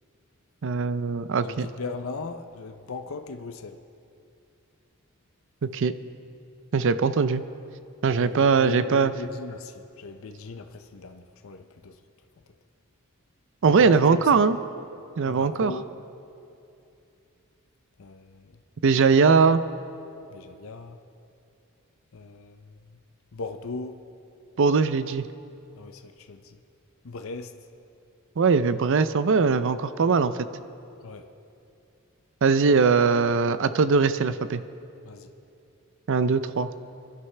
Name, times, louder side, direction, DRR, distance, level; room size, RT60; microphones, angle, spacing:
voice 1, 0.6-1.7 5.6-5.9 6.7-7.4 8.0-9.1 13.6-14.6 15.2-15.7 18.8-19.6 24.6-25.3 28.4-30.5 32.4-34.6 36.1-36.7, right 5 dB, 60° right, 13 dB, 0.5 m, -21 dB
voice 2, 1.4-3.8 8.2-12.0 13.6-14.3 15.2-15.9 18.0-18.6 20.3-21.0 22.1-23.0 23.3-24.0 25.8-26.6 27.0-27.5 31.0-31.3 35.0-35.3, left 4 dB, 65° left, 7 dB, 0.6 m, -38 dB
25.0 x 11.0 x 3.3 m, 2.7 s
head